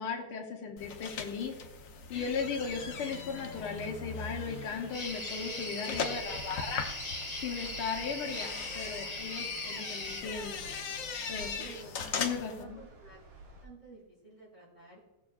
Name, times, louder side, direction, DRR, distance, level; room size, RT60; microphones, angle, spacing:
voice 1, 0.0-1.5 2.1-6.9 7.4-10.7 11.3-11.7 12.2-12.8, left 5 dB, 80° left, 1 dB, 1.9 m, -37 dB
sound 1, 0.8-12.6, left 5 dB, 60° left, 0.9 m, -40 dB
sound 2, 2.4-13.7, right 3 dB, 65° right, 2.3 m, -52 dB
sound 3, 4.9-10.2, left 2 dB, 20° left, 1.0 m, -39 dB
voice 2, 11.6-13.2 13.6-15.0, right 3 dB, 25° right, -10 dB, 3.2 m, -52 dB
18.0 x 6.9 x 2.4 m, 1.0 s
omnidirectional pair, 2.4 m